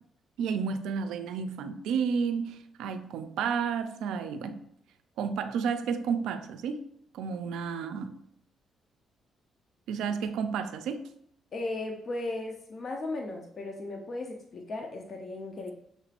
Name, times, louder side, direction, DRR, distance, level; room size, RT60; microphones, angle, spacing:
voice 1, 0.4-4.7 5.2-6.9 7.1-8.2 9.9-11.1, right 6 dB, 90° right, 9 dB, 0.4 m, -31 dB
voice 2, 11.5-15.7, left 2 dB, 50° left, 2 dB, 0.7 m, -36 dB
6.4 x 3.3 x 2.4 m, 0.70 s
cardioid pair, 90°, 0 cm